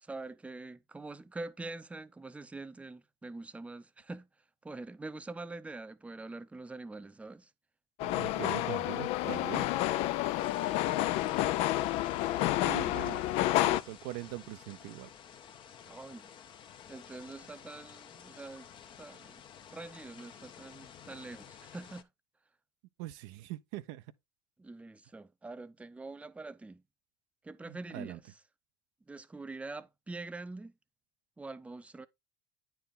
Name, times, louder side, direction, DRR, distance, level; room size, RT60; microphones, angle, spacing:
voice 1, 0.0-4.3 4.6-7.5 15.9-16.3 16.9-18.7 19.0-19.4 19.7-22.1 24.6-26.8 27.4-28.4 29.1-30.7 31.4-32.1, right 3 dB, 10° right, 0.6 m, -44 dB
sound 1, 8.0-13.8, left 15 dB, 65° left, 0.5 m, -30 dB
voice 2, 8.0-9.7 12.6-13.2 13.6-15.1 23.0-24.0 27.7-28.2, right 17 dB, 70° right, 0.5 m, -42 dB
sound 2, 10.4-22.0, left 8 dB, 45° left, 0.9 m, -52 dB
9.1 x 4.6 x 3.6 m
hypercardioid pair, 80°, 11 cm